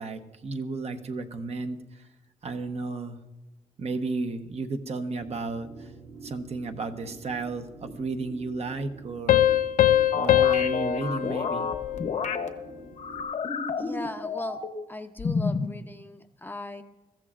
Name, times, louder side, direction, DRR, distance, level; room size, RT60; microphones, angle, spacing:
voice 1, 0.0-2.0 2.4-3.2 3.8-5.9 6.2-9.4 10.1-11.7, right 3 dB, 50° right, 6 dB, 0.9 m, -33 dB
sound 1, 5.2-13.2, right 3 dB, 65° right, 3.5 m, -47 dB
Piano, 9.3-12.6, left 12 dB, 80° left, 0.4 m, -23 dB
sound 2, 10.1-12.5 13.0-14.9 15.2-15.7, left 5 dB, 60° left, 0.9 m, -30 dB
voice 2, 13.8-14.6 14.9-16.8, left 1 dB, 15° left, 7 dB, 0.6 m, -38 dB
22.5 x 14.5 x 2.5 m, 1.0 s
wide cardioid pair, 155°, 14 cm